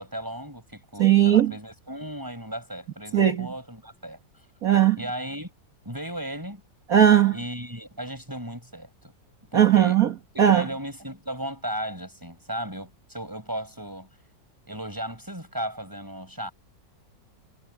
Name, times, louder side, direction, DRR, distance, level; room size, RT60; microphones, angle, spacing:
voice 1, 0.0-4.5 5.0-5.5 5.8-6.6 7.3-9.1 9.5-10.0 10.3-14.1 14.7-16.5, equal, 10° right, 8.0 m, -36 dB
voice 2, 1.0-1.5 3.1-3.5 4.6-5.0 6.9-7.4 9.5-10.1 10.4-10.7, right 10 dB, 50° right, 2.1 m, -18 dB
omnidirectional pair, 2.0 m